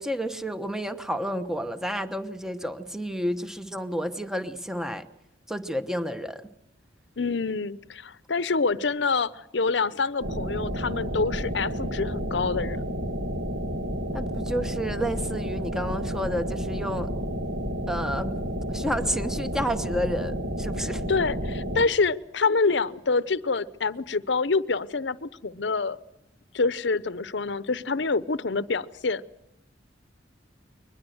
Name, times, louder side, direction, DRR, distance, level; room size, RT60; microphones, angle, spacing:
voice 1, 0.0-5.1 5.5-6.5 14.1-17.1 17.9-18.3 18.7-21.0, equal, 5° right, 10 dB, 1.0 m, -30 dB
voice 2, 7.2-12.8 21.1-26.0 26.5-29.2, left 4 dB, 70° left, 17 dB, 0.8 m, -26 dB
sound 1, 10.2-21.8, equal, 65° right, 2.3 m, -31 dB
22.5 x 20.5 x 7.9 m, 0.87 s
head